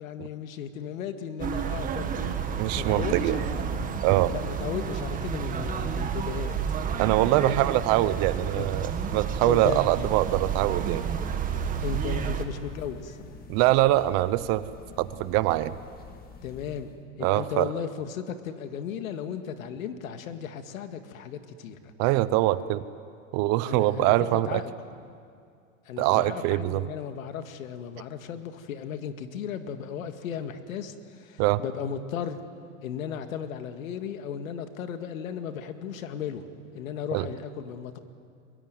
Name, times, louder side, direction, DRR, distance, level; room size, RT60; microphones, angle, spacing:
voice 1, 0.0-2.4 2.8-3.4 4.3-6.6 7.4-7.7 8.4-8.7 9.4-9.8 11.8-13.3 16.4-16.9 17.2-21.9 23.7-24.1 24.5-24.7 25.9-32.5 32.8-36.5 36.7-38.0, left 8 dB, 80° left, 8 dB, 2.1 m, -35 dB
sound 1, 1.4-12.4, right 7 dB, 20° right, 1.6 m, -30 dB
voice 2, 2.6-3.4 4.0-4.3 7.0-11.1 13.5-14.7 15.0-15.7 17.2-17.7 22.0-22.8 23.3-24.6 26.0-26.8 31.4-31.6 37.1-37.3, right 16 dB, 40° right, 15 dB, 0.8 m, -23 dB
sound 2, 10.3-17.0, left 4 dB, 20° left, 2.0 m, -46 dB
23.5 x 21.5 x 9.3 m, 2.3 s
supercardioid pair, 140°, 40 cm